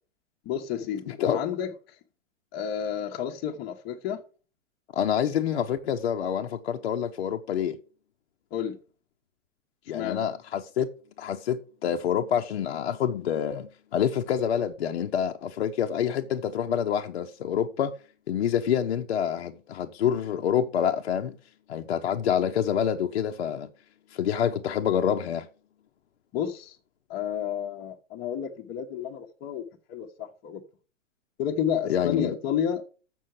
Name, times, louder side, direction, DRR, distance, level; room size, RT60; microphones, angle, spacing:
voice 1, 0.4-1.7 2.5-4.2 8.5-8.8 9.9-10.2 26.3-26.8 27.1-30.6 31.4-32.8, left 9 dB, 25° left, 1.1 m, -31 dB
voice 2, 1.1-1.4 4.9-7.8 9.9-10.9 11.2-17.9 18.3-21.4 21.7-23.7 24.1-25.5 31.9-32.4, left 9 dB, 55° left, 0.9 m, -27 dB
7.1 x 6.4 x 7.6 m
figure-of-eight pair, 110°, 38 cm